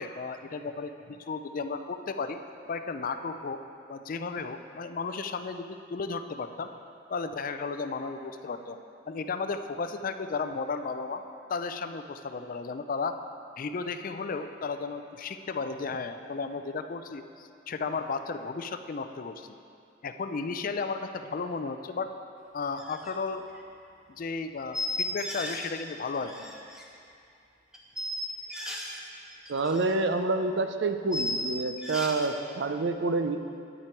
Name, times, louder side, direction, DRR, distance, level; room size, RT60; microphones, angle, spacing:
voice 1, 0.0-2.4 2.7-3.6 3.9-6.7 7.1-8.8 9.1-11.2 11.5-13.2 13.6-19.5 20.0-22.1 22.5-23.4 24.2-26.6, left 4 dB, 45° left, 9 dB, 0.4 m, -34 dB
sound 1, 22.8-23.1 23.4-23.6 24.7-25.7 26.0-26.8 27.7-29.0 29.3-29.9 30.2-30.3 31.1-32.3, left 1 dB, 5° right, 0.8 m, -35 dB
voice 2, 29.5-33.4, right 3 dB, 60° right, 8 dB, 0.5 m, -28 dB
9.9 x 8.8 x 4.5 m, 2.5 s
head